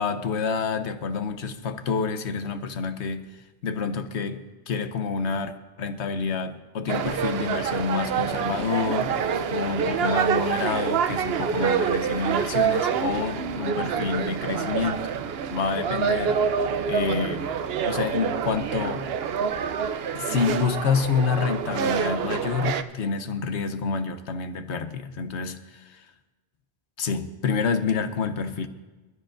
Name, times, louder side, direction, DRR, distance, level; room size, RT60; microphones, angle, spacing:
voice 1, 0.0-3.3 3.6-9.1 9.5-15.1 15.5-16.4 16.9-17.5 17.8-19.1 20.1-26.0 27.0-28.7, left 5 dB, 85° left, 10 dB, 1.1 m, -28 dB
sound 1, 6.9-22.8, right 7 dB, 70° right, 0.9 m, -26 dB
28.0 x 13.0 x 2.6 m, 1.2 s
omnidirectional pair, 1.1 m